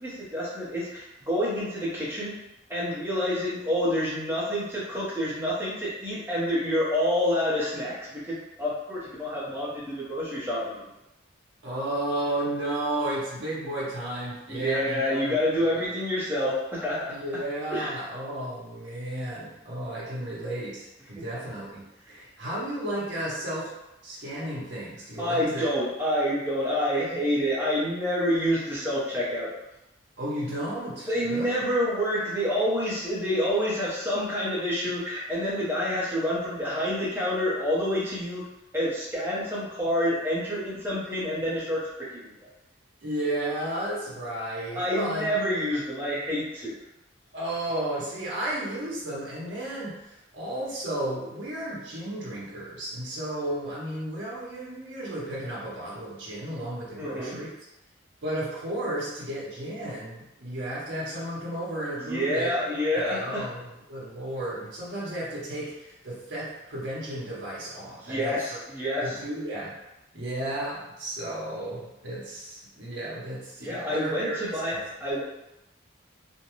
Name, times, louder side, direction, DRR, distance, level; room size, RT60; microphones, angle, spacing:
voice 1, 0.0-2.4 2.7-10.7 14.5-17.1 17.7-17.9 25.2-29.5 31.1-38.4 38.7-42.5 44.7-46.7 57.0-57.4 62.0-63.5 68.0-69.2 73.6-75.2, equal, 10° right, -9 dB, 0.8 m, -28 dB
voice 2, 11.6-15.8 17.1-23.7 24.0-25.7 30.2-31.6 43.0-45.3 47.3-57.5 58.2-62.5 62.9-68.5 69.0-69.7 70.1-74.8, right 1 dB, 60° right, -6 dB, 0.8 m, -33 dB
2.5 x 2.2 x 3.0 m, 0.91 s
head